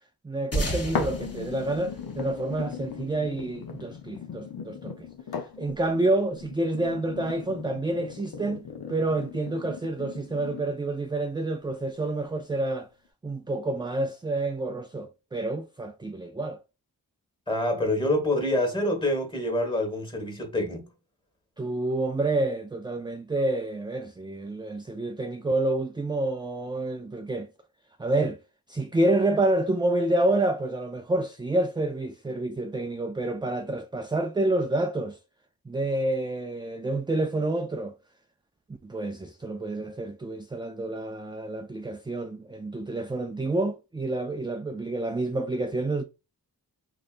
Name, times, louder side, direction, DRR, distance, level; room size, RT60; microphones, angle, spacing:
voice 1, 0.2-5.0 5.6-12.9 13.2-16.6 21.6-27.5 28.0-28.4 28.7-35.2 35.7-37.9 38.8-46.0, right 2 dB, 15° right, 0.3 m, -28 dB
sound 1, 0.5-3.3, equal, 40° left, 1.5 m, -33 dB
sound 2, 0.9-10.9 11.5-11.6, left 7 dB, 70° left, 0.8 m, -38 dB
voice 2, 17.5-20.9, left 1 dB, 15° left, 1.7 m, -26 dB
4.0 x 3.2 x 2.5 m
cardioid pair, 65°, 39 cm